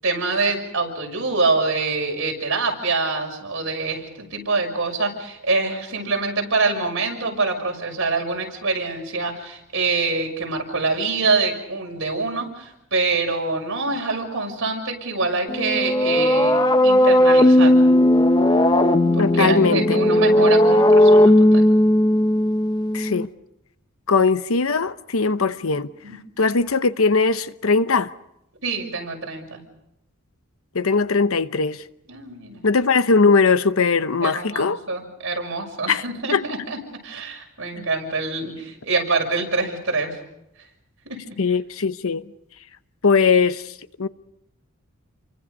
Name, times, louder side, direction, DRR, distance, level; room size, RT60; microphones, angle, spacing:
voice 1, 0.0-17.8 19.1-21.7 26.0-26.2 28.6-29.6 32.1-32.6 34.2-36.8 37.0-40.2 41.0-41.4, right 3 dB, 60° right, 6.4 m, -25 dB
sound 1, 15.5-23.3, left 1 dB, 20° left, 1.0 m, -16 dB
voice 2, 19.2-20.0 22.9-23.3 24.1-25.9 26.4-28.1 30.7-31.8 32.6-34.8 35.9-36.0 36.3-36.4 37.8-37.9 41.4-42.2 43.0-44.1, left 4 dB, 70° left, 0.8 m, -20 dB
29.0 x 24.0 x 5.3 m
head